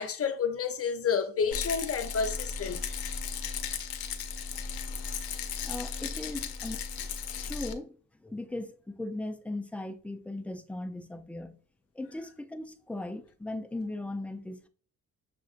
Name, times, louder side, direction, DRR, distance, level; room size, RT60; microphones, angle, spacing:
voice 1, 0.0-2.8, left 6 dB, 40° left, 0.7 m, -30 dB
Rattle, 1.5-7.7, left 6 dB, 85° left, 0.6 m, -36 dB
voice 2, 5.6-6.8 7.4-11.6 12.0-14.7, left 2 dB, 5° left, 0.3 m, -38 dB
6.6 x 2.5 x 2.4 m
cardioid pair, 95°, 35 cm